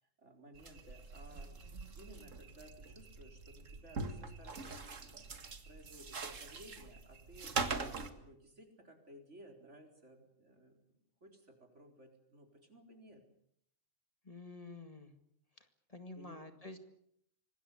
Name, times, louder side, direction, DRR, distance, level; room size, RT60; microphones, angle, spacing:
voice 1, 0.0-1.6 2.0-5.3 5.6-13.2 16.1-16.5, right 1 dB, 70° right, 4 dB, 4.6 m, -58 dB
sound 1, 0.5-8.1, right 4 dB, 90° right, 2.2 m, -43 dB
voice 2, 14.2-15.1 15.6-16.8, left 2 dB, 30° left, 8 dB, 2.1 m, -50 dB
25.0 x 20.0 x 8.5 m, 0.70 s
omnidirectional pair, 1.3 m